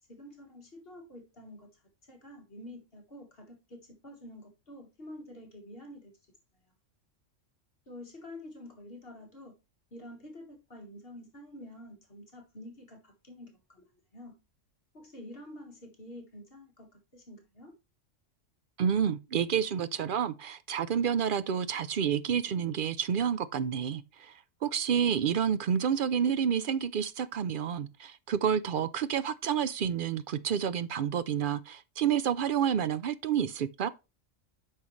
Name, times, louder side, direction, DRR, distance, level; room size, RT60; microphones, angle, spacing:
voice 1, 0.1-1.8 2.1-6.1 6.5-6.7 7.9-9.5 9.9-13.8 14.1-14.3 14.9-17.7, left 1 dB, 50° left, 1.8 m, -48 dB
voice 2, 18.8-24.3 24.6-33.9, right 8 dB, 60° right, 0.6 m, -29 dB
8.9 x 5.6 x 3.1 m
omnidirectional pair, 1.3 m